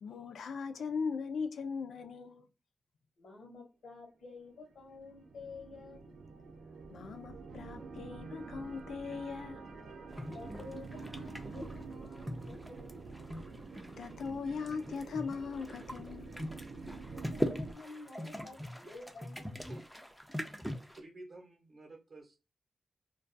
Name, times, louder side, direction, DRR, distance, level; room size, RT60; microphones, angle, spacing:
voice 1, 0.0-2.4 6.9-9.6 13.7-16.4, left 5 dB, 90° left, 0.4 m, -39 dB
voice 2, 3.2-6.2 10.3-13.3 17.3-19.7, left 3 dB, 75° left, 0.8 m, -51 dB
sound 1, 4.3-17.7, right 4 dB, 75° right, 0.4 m, -47 dB
sound 2, 10.1-21.0, equal, ahead, 0.3 m, -41 dB
voice 3, 20.9-22.4, right 2 dB, 45° right, 0.7 m, -51 dB
2.3 x 2.2 x 2.5 m
wide cardioid pair, 160°, 0 cm